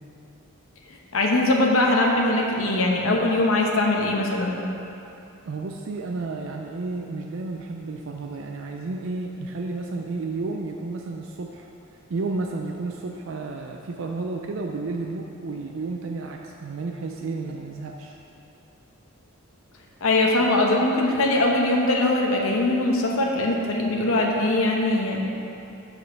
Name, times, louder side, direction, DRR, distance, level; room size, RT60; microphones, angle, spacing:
voice 1, 1.1-4.6 20.0-25.3, left 2 dB, 65° left, 0 dB, 0.8 m, -21 dB
voice 2, 5.5-18.2, right 3 dB, 60° right, 1 dB, 0.4 m, -32 dB
6.3 x 5.2 x 5.7 m, 2.8 s
head